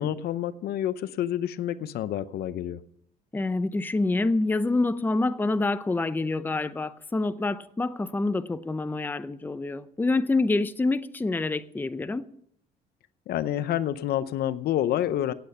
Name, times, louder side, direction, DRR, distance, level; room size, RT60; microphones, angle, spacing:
voice 1, 0.0-2.8 13.3-15.3, left 11 dB, 70° left, 0.8 m, -28 dB
voice 2, 3.3-12.2, left 2 dB, 10° left, 0.6 m, -27 dB
17.5 x 8.7 x 5.7 m
cardioid pair, 110°, 17 cm